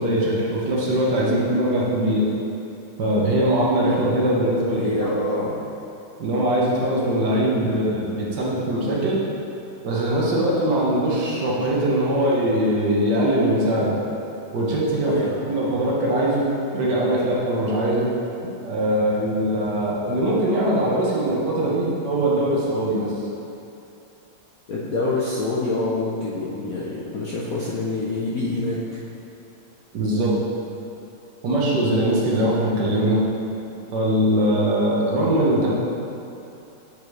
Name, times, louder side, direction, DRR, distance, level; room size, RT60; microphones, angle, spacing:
voice 1, 0.0-2.3 3.0-5.1 6.2-9.3 9.8-13.9 14.5-15.2 15.5-16.5 16.7-18.1 18.6-23.1 29.9-30.3 31.4-33.2 33.9-35.7, right 1 dB, 60° right, -5 dB, 1.6 m, -21 dB
voice 2, 1.2-1.5 4.7-5.5 10.2-10.3 15.0-15.5 24.7-29.0, left 2 dB, 65° left, -6 dB, 0.9 m, -26 dB
8.8 x 4.9 x 3.2 m, 2.8 s
omnidirectional pair, 2.2 m